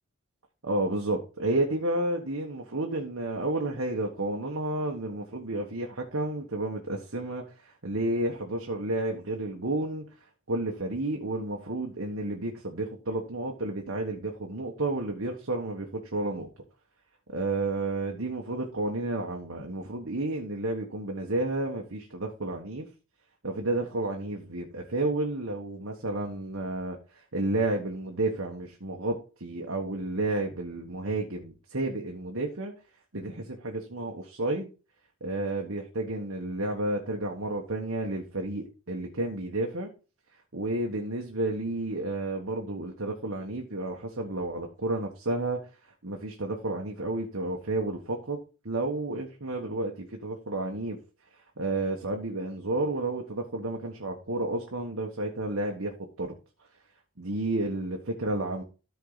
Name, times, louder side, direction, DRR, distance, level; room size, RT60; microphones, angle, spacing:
voice 1, 0.6-10.0 10.5-16.5 17.3-22.9 23.4-32.7 33.1-34.7 35.2-39.9 40.5-45.6 46.0-48.4 48.6-51.0 51.6-56.4 57.2-58.6, right 2 dB, 70° right, 1.4 m, -31 dB
13.5 x 4.7 x 4.0 m
head